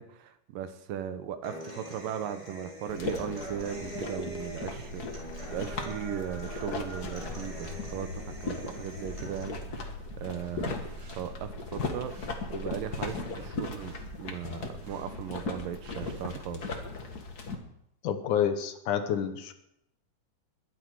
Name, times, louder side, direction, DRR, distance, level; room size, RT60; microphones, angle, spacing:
voice 1, 0.0-10.8 11.1-12.1 12.5-16.8, right 9 dB, 80° right, 10 dB, 2.7 m, -38 dB
Human voice / Acoustic guitar, 1.4-9.4, right 1 dB, 10° right, 4.1 m, -43 dB
sound 1, 2.9-17.6, left 3 dB, 40° left, 1.5 m, -38 dB
sound 2, 5.2-16.7, right 6 dB, 65° right, 3.8 m, -51 dB
voice 2, 18.0-19.5, left 9 dB, 70° left, 8 dB, 2.4 m, -28 dB
21.5 x 10.5 x 4.8 m, 0.78 s
omnidirectional pair, 3.9 m